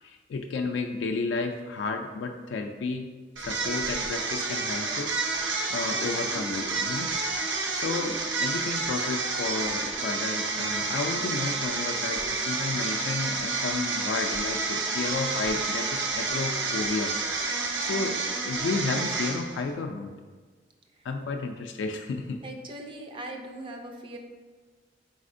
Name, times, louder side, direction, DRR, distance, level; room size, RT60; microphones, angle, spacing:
voice 1, 0.0-3.1 3.4-7.2 7.4-20.1 21.0-22.4, left 3 dB, 85° left, 4 dB, 0.3 m, -32 dB
sound 1, 3.4-19.7, right 3 dB, 85° right, 0.6 m, -29 dB
voice 2, 22.4-24.2, right 1 dB, 30° right, 2 dB, 0.4 m, -40 dB
4.2 x 4.0 x 2.5 m, 1.5 s
head